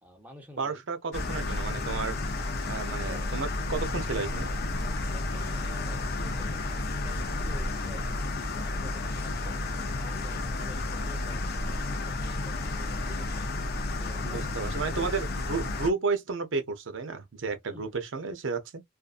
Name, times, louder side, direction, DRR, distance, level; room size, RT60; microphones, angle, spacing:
voice 1, 0.0-0.8 3.0-3.4 5.0-9.6 10.0-13.5 14.0-15.2 17.7-17.9, equal, 10° right, 0.9 m, -49 dB
voice 2, 0.6-2.2 2.7-4.5 14.2-18.8, right 4 dB, 65° right, 0.6 m, -32 dB
sound 1, 1.1-15.9, left 2 dB, 50° left, 0.5 m, -32 dB
2.5 x 2.3 x 2.4 m
head